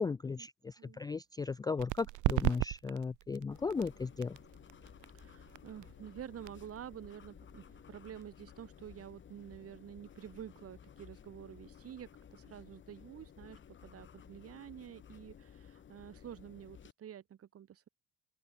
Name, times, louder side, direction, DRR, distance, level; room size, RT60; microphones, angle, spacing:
voice 1, 0.0-4.4, left 4 dB, 15° left, 0.3 m, -36 dB
sound 1, 1.8-9.1, right 20 dB, 85° right, 0.9 m, -39 dB
sound 2, 3.5-16.9, left 8 dB, 40° left, 1.9 m, -56 dB
voice 2, 5.1-17.9, right 10 dB, 50° right, 4.1 m, -49 dB
open air
cardioid pair, 115°, 29 cm